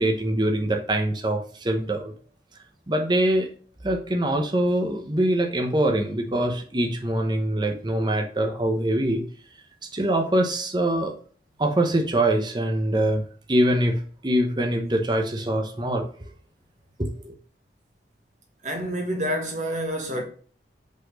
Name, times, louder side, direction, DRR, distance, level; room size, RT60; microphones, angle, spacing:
voice 1, 0.0-2.1 2.9-3.5 3.8-9.2 9.9-11.1 11.6-13.2 13.5-16.3 17.0-17.4, right 1 dB, 25° right, 0.9 m, -24 dB
voice 2, 18.6-20.2, equal, 45° right, 1.3 m, -28 dB
5.2 x 4.3 x 5.1 m
head